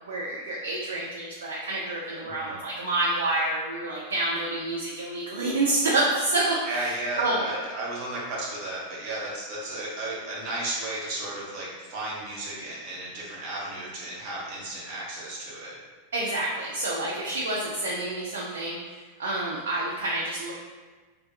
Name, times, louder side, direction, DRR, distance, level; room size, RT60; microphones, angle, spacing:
voice 1, 0.1-6.9 7.2-7.4 16.1-20.5, right 2 dB, 65° right, -4 dB, 0.3 m, -28 dB
voice 2, 2.2-2.5 6.6-15.8 17.8-17.9, right 2 dB, 45° right, -5 dB, 0.8 m, -34 dB
2.3 x 2.1 x 2.6 m, 1.4 s
figure-of-eight pair, 90°, 0 cm